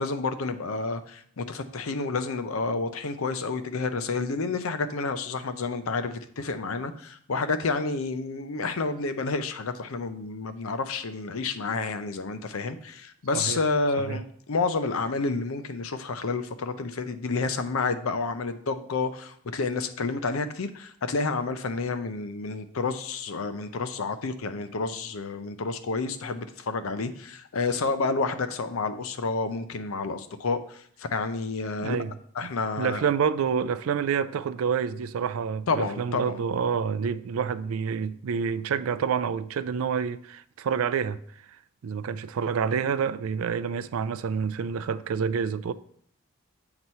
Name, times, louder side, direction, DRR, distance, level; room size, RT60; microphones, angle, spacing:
voice 1, 0.0-32.0 32.4-33.1 35.7-36.4, left 4 dB, 75° left, 0.6 m, -30 dB
voice 2, 31.8-32.1 32.4-32.5 32.8-41.2 41.8-45.7, right 6 dB, 75° right, 0.4 m, -28 dB
7.8 x 2.9 x 5.4 m
head